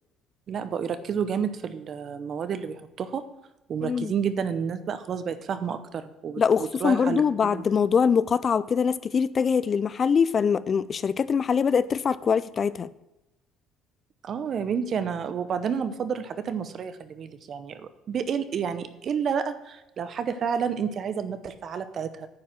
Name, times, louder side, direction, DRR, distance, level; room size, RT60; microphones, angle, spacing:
voice 1, 0.5-3.2 3.7-7.6 14.2-22.3, right 7 dB, 45° right, 11 dB, 0.8 m, -30 dB
voice 2, 3.8-4.1 6.4-12.9, left 6 dB, 35° left, 17 dB, 0.3 m, -23 dB
9.6 x 4.7 x 7.4 m, 0.93 s
cardioid pair, 105°, 0 cm